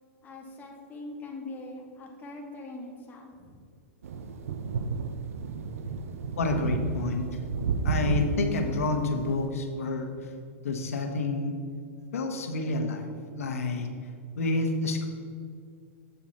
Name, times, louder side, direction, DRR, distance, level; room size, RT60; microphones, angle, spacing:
voice 1, 0.2-3.6, left 2 dB, 25° left, -1 dB, 1.9 m, -42 dB
sound 1, 4.0-9.5, right 4 dB, 80° right, 0.7 m, -32 dB
voice 2, 6.4-7.2 7.8-10.1 10.6-11.6 12.1-13.1 13.3-13.9 14.4-15.1, left 3 dB, 80° left, 4 dB, 1.3 m, -28 dB
8.1 x 7.1 x 4.2 m, 2.3 s
hypercardioid pair, 120°, 8 cm